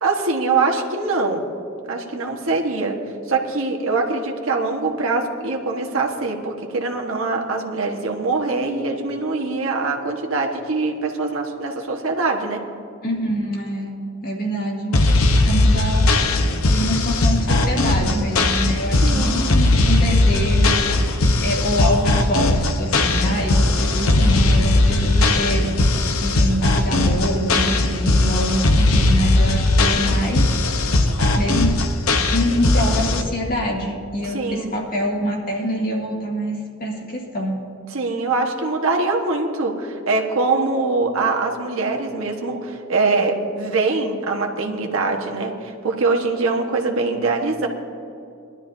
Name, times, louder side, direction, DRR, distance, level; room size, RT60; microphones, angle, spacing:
voice 1, 0.0-1.4 1.9-3.0 3.3-12.6 19.0-19.4 34.2-34.7 37.9-47.7, right 3 dB, 75° right, 1 dB, 1.4 m, -23 dB
voice 2, 13.0-14.0 14.2-15.0 15.4-16.3 16.7-30.5 30.8-31.0 31.4-31.8 32.3-37.6, equal, 45° left, -2 dB, 2.2 m, -25 dB
sound 1, 14.9-33.2, left 2 dB, 85° left, 0.9 m, -18 dB
20.5 x 12.0 x 2.7 m, 2.6 s
head